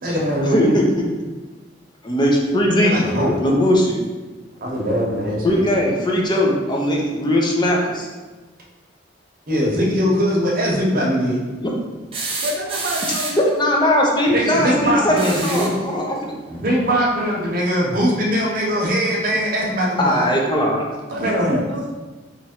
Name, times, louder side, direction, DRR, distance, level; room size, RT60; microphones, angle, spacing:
voice 1, 0.0-0.8 2.8-3.3 4.6-5.6 9.5-11.4 14.3-15.7 16.5-20.3 21.1-21.6, equal, 50° right, -3 dB, 0.9 m, -21 dB
voice 2, 0.5-0.9 2.0-3.1 3.4-4.0 5.4-8.1 11.6-11.7 13.6-16.3 20.0-20.8, left 1 dB, 25° left, -1 dB, 0.6 m, -19 dB
sound 1, 12.1-13.5 15.1-15.8 17.5-17.6 19.1-19.2, right 3 dB, 30° right, 0.6 m, -28 dB
voice 3, 12.4-13.5 21.1-21.9, equal, 75° right, -1 dB, 0.7 m, -27 dB
3.1 x 2.5 x 4.3 m, 1.3 s
head